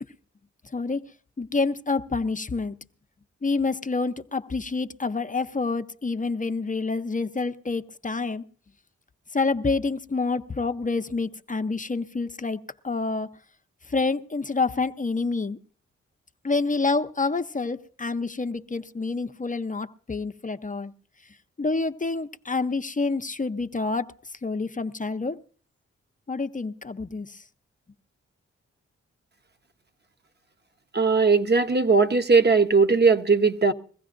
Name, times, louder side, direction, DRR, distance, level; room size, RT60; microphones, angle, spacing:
voice 1, 1.4-2.8 3.4-8.4 9.3-13.3 13.9-15.6 16.4-20.9 21.6-24.1 24.4-25.4 26.3-27.4, left 3 dB, 25° left, 0.7 m, -27 dB
voice 2, 30.9-33.7, right 4 dB, 35° right, 1.0 m, -19 dB
22.0 x 15.5 x 2.6 m
supercardioid pair, 45°, 29 cm